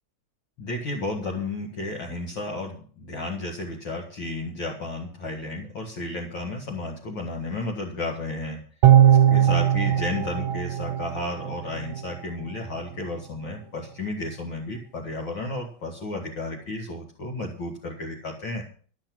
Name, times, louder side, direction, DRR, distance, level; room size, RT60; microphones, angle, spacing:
voice 1, 0.6-8.6 9.1-18.6, left 2 dB, 70° left, -1 dB, 2.7 m, -33 dB
sound 1, 8.8-12.2 12.5-12.6, right 10 dB, 75° right, 1.7 m, -20 dB
14.5 x 7.7 x 6.1 m, 0.43 s
omnidirectional pair, 2.2 m